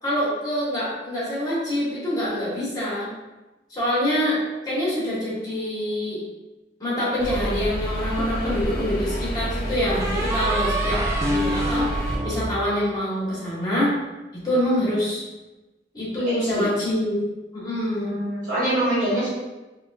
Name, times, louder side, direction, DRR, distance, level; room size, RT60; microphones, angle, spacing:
voice 1, 0.0-3.1 3.7-4.4 4.6-6.2 6.8-11.0 11.3-11.9 12.2-14.0 14.4-15.2 15.9-17.2 17.5-18.2, left 1 dB, 20° left, -8 dB, 1.4 m, -25 dB
sound 1, 7.2-12.2, right 1 dB, 55° left, 0.6 m, -28 dB
sound 2, 8.2-9.0 10.0-13.3, right 1 dB, 15° right, 0.4 m, -28 dB
voice 2, 16.3-16.6 17.9-19.3, right 1 dB, 50° right, -11 dB, 1.3 m, -25 dB
4.7 x 2.4 x 2.5 m, 1.1 s
head